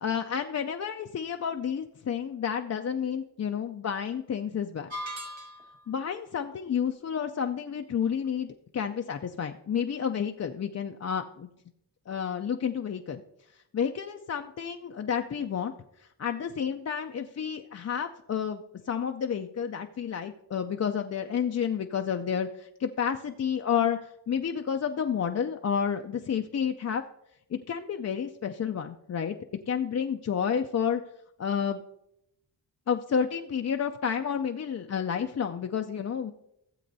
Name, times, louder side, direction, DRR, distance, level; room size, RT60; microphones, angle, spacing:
voice 1, 0.0-4.9 5.9-11.5 12.1-13.2 13.7-15.7 16.0-24.0 24.3-27.0 27.5-29.4 29.7-31.0 31.4-31.8 32.9-36.3, left 7 dB, 35° left, 5 dB, 0.4 m, -30 dB
sound 1, 4.9-5.9, equal, 85° right, 1.8 m, -38 dB
15.5 x 7.6 x 2.7 m, 0.82 s
wide cardioid pair, 90°, 45 cm